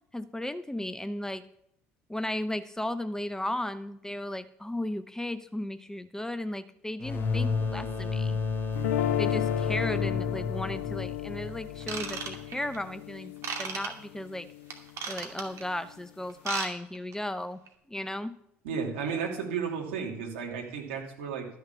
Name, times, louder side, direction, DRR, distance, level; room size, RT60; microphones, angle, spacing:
voice 1, 0.1-1.5 2.1-8.4 9.2-13.3 13.6-14.5 15.1-17.6 17.9-18.4, left 1 dB, 10° left, 12 dB, 0.7 m, -35 dB
sound 1, 7.0-12.4, left 4 dB, 35° left, 3.0 m, -32 dB
sound 2, 8.7-14.8, left 14 dB, 75° left, 0.4 m, -34 dB
Ratchet pawl / Tools, 11.8-12.8 13.4-13.9 14.7-15.6 16.3-16.7 16.9-17.1 17.7-17.8, right 5 dB, 50° right, 2.3 m, -35 dB
voice 2, 18.6-21.5, right 6 dB, 70° right, 0 dB, 2.7 m, -33 dB
13.0 x 6.5 x 7.2 m, 0.75 s
hypercardioid pair, 60°, 7 cm